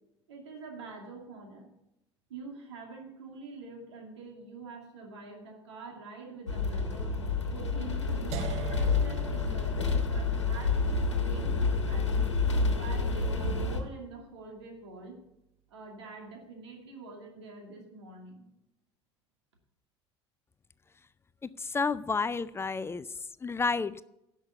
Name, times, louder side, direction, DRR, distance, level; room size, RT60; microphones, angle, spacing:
voice 1, 0.3-1.7 2.3-7.1 7.5-9.8 10.1-12.2 12.7-15.2 15.7-18.5, right 3 dB, 70° right, 2 dB, 2.5 m, -46 dB
sound 1, 6.5-13.8, left 4 dB, 85° left, 1.3 m, -29 dB
sound 2, 8.3-14.2, right 11 dB, 45° right, 0.7 m, -44 dB
voice 2, 21.4-23.1 23.4-24.0, left 4 dB, 15° left, 16 dB, 0.4 m, -30 dB
11.0 x 6.7 x 7.0 m, 0.85 s
figure-of-eight pair, 65°, 15 cm